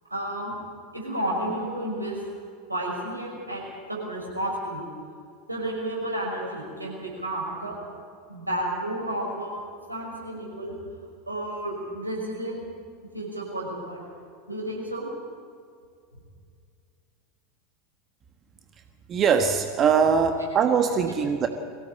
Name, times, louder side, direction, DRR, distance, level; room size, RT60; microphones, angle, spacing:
voice 1, 0.1-0.5 0.9-2.2 2.7-3.6 3.9-4.8 5.5-7.8 8.3-9.6 9.9-10.8 11.3-12.7 13.1-14.0 14.5-15.1, right 1 dB, 85° right, -2 dB, 5.9 m, -31 dB
voice 2, 19.1-21.5, right 6 dB, 30° right, 6 dB, 1.4 m, -22 dB
23.0 x 17.0 x 8.4 m, 2.3 s
figure-of-eight pair, 80°, 0 cm